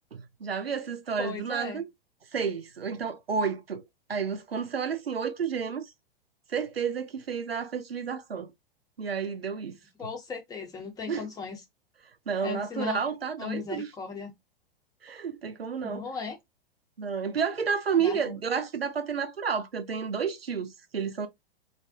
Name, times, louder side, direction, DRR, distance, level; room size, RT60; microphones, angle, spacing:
voice 1, 0.1-1.9 2.3-5.9 6.5-8.5 9.0-9.8 11.1-11.3 12.3-13.9 15.0-16.0 17.0-21.3, right 6 dB, 85° right, 0.5 m, -31 dB
voice 2, 1.2-1.8 10.0-11.6 12.4-13.0 13.4-14.3 15.8-16.4 18.0-18.4, left 5 dB, 10° left, 0.7 m, -37 dB
2.6 x 2.3 x 2.3 m
figure-of-eight pair, 100°, 30 cm